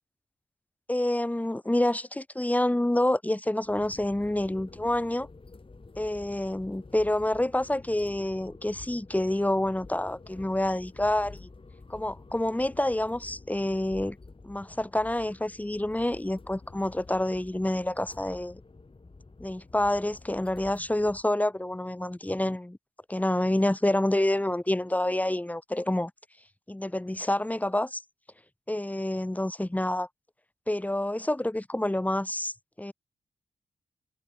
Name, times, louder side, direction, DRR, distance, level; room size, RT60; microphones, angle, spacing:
voice 1, 0.9-5.3 6.0-11.5 11.9-14.2 14.4-18.6 19.4-22.8 23.1-26.1 26.7-28.0 28.7-30.1 30.7-32.9, left 1 dB, 10° left, 1.2 m, -28 dB
sound 1, 3.6-21.2, left 3 dB, 35° left, 4.7 m, -49 dB
cardioid pair, 55°, 15 cm